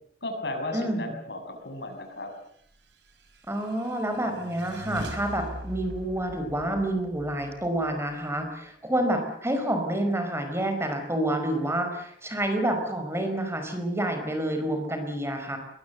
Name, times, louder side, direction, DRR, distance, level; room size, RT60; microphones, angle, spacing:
voice 1, 0.2-2.3, left 2 dB, 70° left, 5 dB, 6.7 m, -34 dB
voice 2, 0.7-1.1 3.5-15.6, right 1 dB, 15° right, 6 dB, 4.8 m, -28 dB
sound 1, 2.9-8.5, right 1 dB, 70° right, 4.8 m, -42 dB
22.5 x 22.0 x 8.0 m, 0.68 s
head